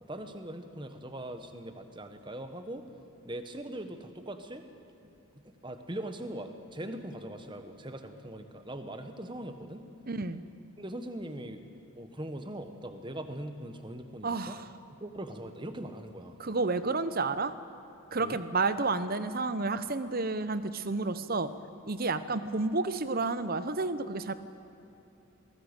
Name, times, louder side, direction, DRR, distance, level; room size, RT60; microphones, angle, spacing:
voice 1, 0.1-2.8 3.2-4.6 5.4-9.8 10.8-11.6 11.9-14.6 15.0-16.4 18.2-18.4, right 1 dB, 20° right, 8 dB, 1.3 m, -41 dB
voice 2, 10.1-10.4 14.2-14.6 16.4-17.5 18.1-21.5 21.9-24.3, right 3 dB, 40° right, 13 dB, 0.9 m, -30 dB
22.5 x 18.5 x 8.2 m, 3.0 s
head